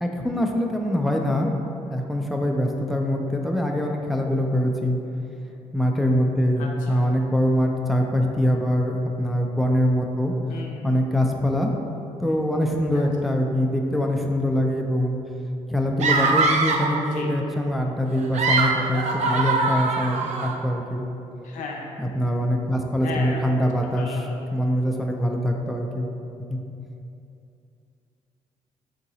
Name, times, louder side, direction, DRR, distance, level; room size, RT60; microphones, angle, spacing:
voice 1, 0.0-1.5 1.9-5.0 5.7-10.3 10.8-11.7 12.2-15.2 15.7-21.0 22.0-26.1 26.5-26.6, equal, ahead, 1 dB, 0.4 m, -23 dB
voice 2, 6.6-7.2 10.5-10.9 12.9-13.0 17.1-17.4 21.4-21.9 23.0-23.7 23.9-24.3, left 3 dB, 80° left, 0 dB, 0.5 m, -35 dB
sound 1, 16.0-17.0 18.1-20.5, right 3 dB, 65° right, 0.4 m, -22 dB
3.7 x 2.8 x 4.0 m, 2.7 s
cardioid pair, 70°, 13 cm